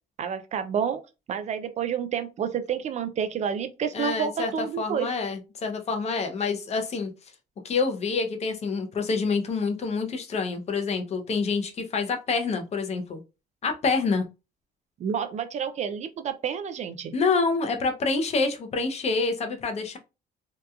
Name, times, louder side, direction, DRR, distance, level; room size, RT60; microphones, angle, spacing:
voice 1, 0.2-1.0 1.3-5.1 15.0-17.1, right 7 dB, 45° right, 0.4 m, -29 dB
voice 2, 3.9-7.1 7.6-13.2 13.6-14.2 17.1-20.0, left 4 dB, 40° left, 0.6 m, -27 dB
2.8 x 2.2 x 2.3 m
cardioid pair, 110°, 17 cm